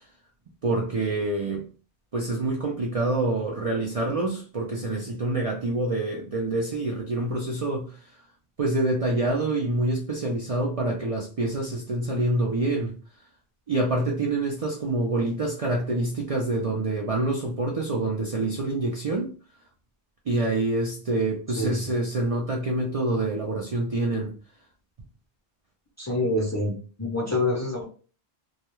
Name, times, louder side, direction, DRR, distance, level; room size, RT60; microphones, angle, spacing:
voice 1, 0.6-1.6 2.1-8.0 8.6-13.0 13.7-19.3 20.3-24.3, right 2 dB, 45° right, 0.5 m, -26 dB
voice 2, 26.0-26.7 27.0-27.8, left 1 dB, 20° left, 0.5 m, -26 dB
2.3 x 2.2 x 3.0 m
omnidirectional pair, 1.0 m